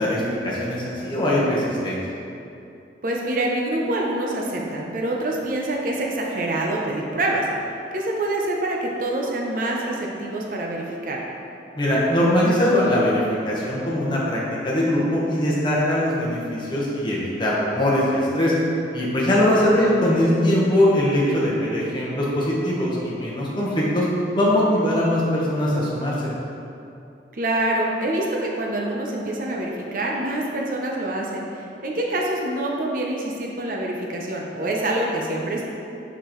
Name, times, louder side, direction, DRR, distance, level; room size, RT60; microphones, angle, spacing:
voice 1, 0.0-2.0 11.7-18.5 18.9-24.0 24.3-26.3, left 1 dB, 25° left, -6 dB, 1.1 m, -21 dB
voice 2, 3.0-7.5 7.9-11.2 19.4-19.9 27.3-35.6, right 1 dB, 50° right, -1 dB, 0.6 m, -26 dB
6.4 x 5.0 x 3.1 m, 2.7 s
head